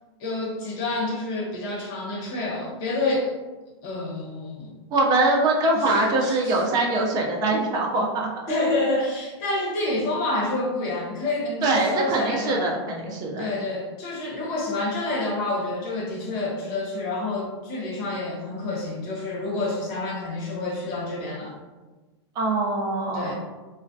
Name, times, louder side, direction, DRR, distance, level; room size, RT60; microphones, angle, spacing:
voice 1, 0.2-3.3 3.8-4.7 5.7-6.6 8.5-12.7 13.4-21.5 23.1-23.3, left 2 dB, 45° left, -3 dB, 0.8 m, -28 dB
voice 2, 4.9-8.3 11.6-13.5 22.4-23.3, right 2 dB, 25° right, 0 dB, 0.5 m, -23 dB
2.2 x 2.1 x 2.5 m, 1.3 s
hypercardioid pair, 135°, 15 cm